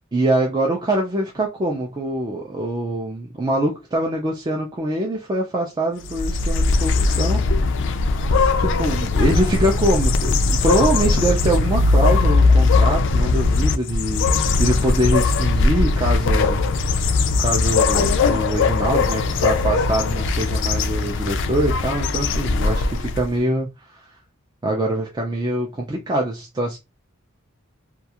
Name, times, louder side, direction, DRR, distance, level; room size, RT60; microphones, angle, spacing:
voice 1, 0.1-7.4 8.6-16.6 17.4-24.0 24.6-26.8, right 1 dB, 20° right, 0.4 m, -24 dB
sound 1, 6.0-23.3, left 3 dB, 60° left, 0.3 m, -19 dB
2.3 x 2.3 x 2.8 m
head